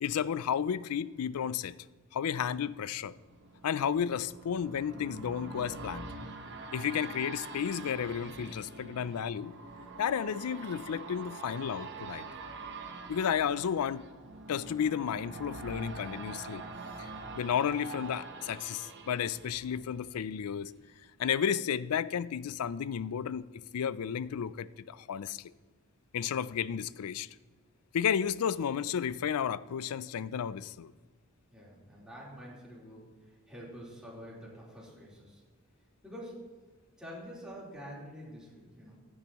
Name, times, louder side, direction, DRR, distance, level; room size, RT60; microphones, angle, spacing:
voice 1, 0.0-1.8 2.1-3.2 3.6-6.1 6.7-9.5 10.0-12.3 13.1-14.0 14.5-16.7 17.0-17.1 17.3-20.7 21.2-25.5 26.1-27.3 27.9-30.9, left 8 dB, 75° left, 0.4 m, -32 dB
sound 1, 2.6-20.4 20.8-20.9, right 3 dB, 55° right, 1.0 m, -45 dB
voice 2, 31.5-35.4 36.0-36.5 37.0-39.0, equal, 5° right, 3.8 m, -47 dB
16.0 x 10.5 x 3.0 m
head